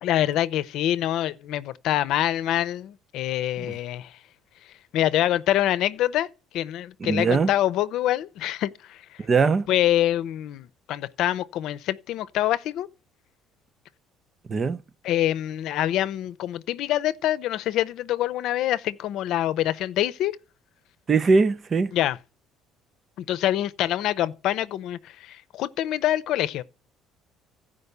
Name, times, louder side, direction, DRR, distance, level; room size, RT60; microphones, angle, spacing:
voice 1, 0.0-4.1 4.9-6.3 6.5-9.0 9.7-12.9 15.0-20.4 21.9-22.2 23.2-26.6, left 13 dB, 65° left, 0.7 m, -25 dB
voice 2, 7.0-7.5 9.2-9.7 14.5-14.8 21.1-21.9, right 4 dB, 25° right, 0.6 m, -21 dB
15.5 x 5.2 x 6.7 m
cardioid pair, 145°, 0 cm